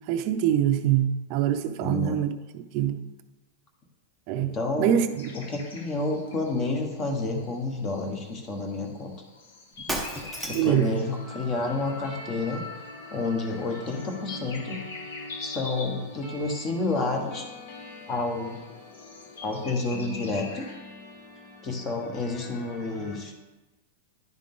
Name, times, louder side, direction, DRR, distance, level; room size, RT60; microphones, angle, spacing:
voice 1, 0.1-3.0 4.3-5.3 10.5-11.0, right 10 dB, 40° right, 8 dB, 0.5 m, -25 dB
voice 2, 1.8-2.2 4.4-4.9 5.3-9.1 10.5-12.6 13.1-14.8 15.4-17.4 18.1-18.6 19.4-20.6 21.6-23.3, left 3 dB, 25° left, 3 dB, 1.1 m, -30 dB
sound 1, 5.2-20.7, left 4 dB, 85° left, 1.3 m, -46 dB
Shatter, 9.7-10.9, equal, 5° left, 0.7 m, -32 dB
sound 2, 10.2-23.2, left 2 dB, 50° left, 1.4 m, -43 dB
10.5 x 3.7 x 3.8 m, 1.1 s
supercardioid pair, 155°, 0 cm